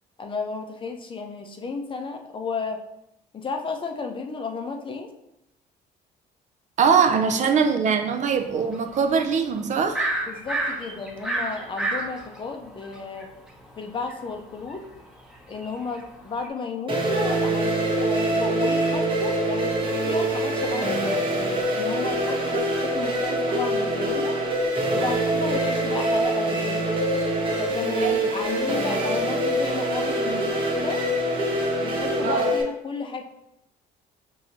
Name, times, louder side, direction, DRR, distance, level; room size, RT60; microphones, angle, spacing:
voice 1, 0.2-2.8 3.3-5.1 10.3-13.3 13.8-14.8 15.5-21.3 21.7-24.4 24.9-26.9 27.6-31.0 31.8-33.2, left 4 dB, 30° left, 4 dB, 0.5 m, -33 dB
voice 2, 6.8-10.2 28.0-28.3 32.2-32.5, right 6 dB, 45° right, 6 dB, 0.4 m, -22 dB
sound 1, 8.7-9.2 9.6-13.2 13.7-16.5, right 2 dB, 5° right, 0.9 m, -29 dB
sound 2, 16.9-32.6, right 1 dB, 30° right, 1.0 m, -24 dB
5.6 x 2.7 x 2.8 m, 0.87 s
cardioid pair, 110°, 17 cm